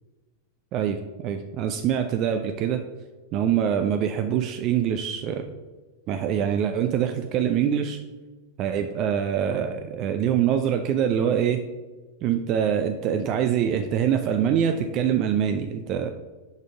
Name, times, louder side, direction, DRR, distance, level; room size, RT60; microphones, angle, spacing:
voice 1, 0.7-2.8 3.3-5.4 6.1-8.0 8.6-11.6 12.2-16.1, right 9 dB, 40° right, 7 dB, 0.4 m, -24 dB
6.4 x 5.2 x 3.5 m, 1.2 s
figure-of-eight pair, 90°, 0 cm